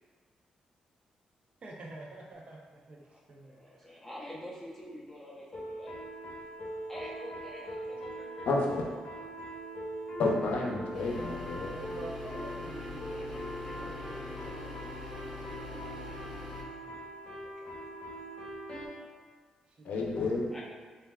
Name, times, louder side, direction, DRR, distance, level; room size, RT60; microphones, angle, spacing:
voice 1, 1.6-3.9 7.7-7.9 11.7-13.3 13.6-14.6 19.0-19.1 19.8-20.2, right 2 dB, 55° right, -1 dB, 0.5 m, -48 dB
voice 2, 3.1-5.9 6.9-8.5 13.1-16.7 17.6-17.7 20.5-20.6, equal, 10° left, -5 dB, 0.7 m, -48 dB
sound 1, 5.5-18.9, equal, 50° left, 0.9 m, -42 dB
voice 3, 8.5-8.8 10.2-11.7 19.8-20.5, left 3 dB, 80° left, -1 dB, 0.5 m, -30 dB
sound 2, 10.9-16.6, left 2 dB, 20° right, 1.0 m, -43 dB
3.3 x 2.3 x 2.2 m, 1.5 s
cardioid pair, 90°, 2 cm